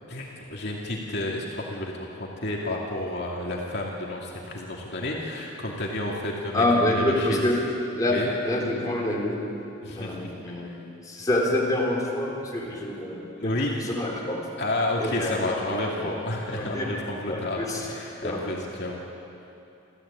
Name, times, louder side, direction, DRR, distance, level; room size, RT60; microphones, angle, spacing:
voice 1, 0.1-7.5 8.1-8.3 9.8-10.7 12.6-12.7 13.4-13.8 14.6-19.0, left 1 dB, 55° left, -2 dB, 2.6 m, -31 dB
voice 2, 6.5-7.6 7.9-8.2 8.4-9.4 9.9-14.4 15.0-15.8 16.5-16.9 17.3-17.8 18.2-18.4, left 1 dB, 20° left, -3 dB, 3.8 m, -27 dB
28.5 x 14.0 x 8.8 m, 2.8 s
head